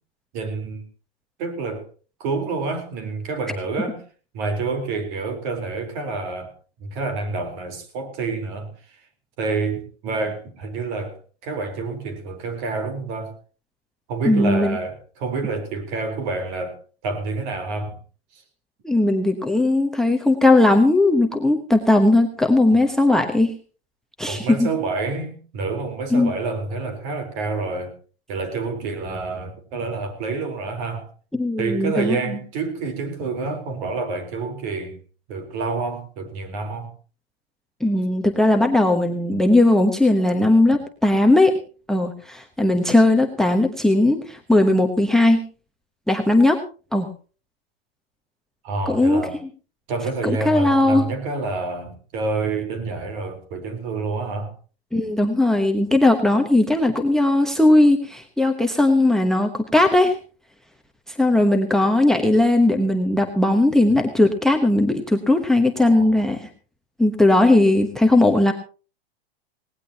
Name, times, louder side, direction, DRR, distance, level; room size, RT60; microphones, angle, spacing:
voice 1, 0.3-0.8 1.4-1.9 2.2-4.0 4.3-6.5 6.8-9.0 9.4-13.3 14.1-16.8 17.0-18.0 18.3-18.4 24.3-28.0 28.3-31.1 31.6-35.0 35.3-36.9 48.6-49.4 49.9-54.5 63.9-64.0 65.8-66.4, right 3 dB, 45° right, 3.9 m, -28 dB
voice 2, 14.2-14.8 18.8-23.5 24.2-24.7 26.1-26.3 31.3-32.2 37.8-41.6 41.9-45.4 46.1-46.6 46.9-47.1 48.9-49.2 50.2-51.1 54.9-60.1 61.1-66.5 67.0-68.5, left 2 dB, ahead, 1.0 m, -18 dB
19.5 x 18.0 x 2.9 m
hypercardioid pair, 140°, 31 cm